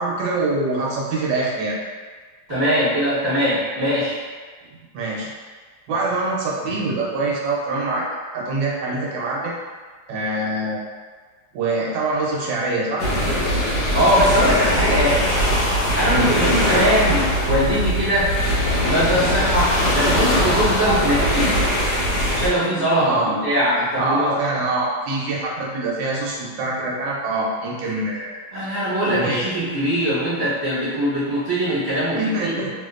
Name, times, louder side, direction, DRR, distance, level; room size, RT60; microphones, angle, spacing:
voice 1, 0.0-1.8 4.9-5.3 5.9-8.1 8.3-9.5 10.1-10.8 11.5-13.0 16.1-16.4 23.0-23.4 24.0-28.4 29.1-29.5 32.1-32.7, right 2 dB, 70° right, -4 dB, 1.3 m, -24 dB
voice 2, 2.5-4.2 13.9-15.3 15.9-18.3 18.8-21.6 22.3-24.4 28.5-32.5, equal, 25° right, -14 dB, 1.2 m, -21 dB
sound 1, 13.0-22.5, equal, 65° left, 1.1 m, -20 dB
3.1 x 2.8 x 2.4 m, 1.5 s
omnidirectional pair, 2.3 m